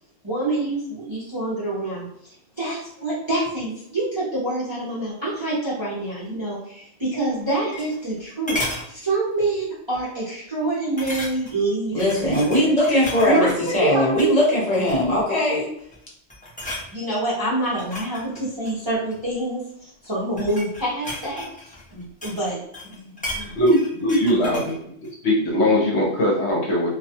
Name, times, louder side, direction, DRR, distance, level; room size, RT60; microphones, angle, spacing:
voice 1, 0.2-12.2 13.3-13.5 13.8-14.4 16.9-21.5 21.9-22.6 22.8-23.5 24.4-24.6, right 2 dB, 30° right, -8 dB, 0.6 m, -26 dB
sound 1, 7.3-8.2 8.5-8.9 9.4-9.6 9.9-10.0 11.0-11.6 12.0-13.6 14.1-14.3 14.7-15.3 15.8-16.0 16.3-16.9 17.6-19.2 20.0-22.5 22.7-24.8 25.0-25.1, left 1 dB, 10° left, 0.4 m, -34 dB
voice 2, 11.9-15.7, left 1 dB, 35° left, -4 dB, 0.8 m, -20 dB
voice 3, 23.5-24.8 25.2-27.0, left 1 dB, 65° left, -2 dB, 1.0 m, -20 dB
2.3 x 2.2 x 2.7 m, 0.71 s
omnidirectional pair, 1.3 m